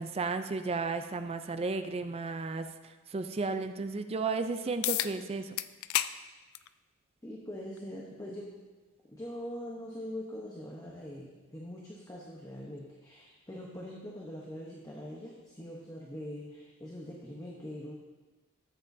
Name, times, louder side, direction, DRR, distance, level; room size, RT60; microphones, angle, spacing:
voice 1, 0.0-5.6, right 4 dB, 30° right, 9 dB, 0.4 m, -34 dB
sound 1, 4.8-5.1 5.6-6.1 6.5-6.7 7.8-7.9 12.8-12.9, left 14 dB, 80° left, 0.3 m, -30 dB
voice 2, 7.2-8.5 9.1-17.9, left 1 dB, 15° left, -3 dB, 0.9 m, -43 dB
13.0 x 7.6 x 2.7 m, 1.2 s
head